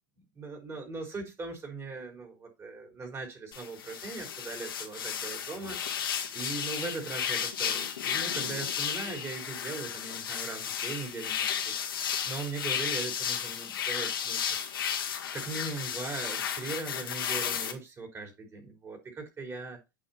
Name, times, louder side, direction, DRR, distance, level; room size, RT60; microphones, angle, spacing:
voice 1, 0.3-5.8 6.3-11.7 12.3-14.6 15.3-19.8, right 3 dB, 25° right, 4.3 m, -39 dB
sound 1, 3.5-17.7, left 8 dB, 80° left, 1.9 m, -33 dB
8.5 x 5.0 x 4.4 m
hypercardioid pair, 100°, 11 cm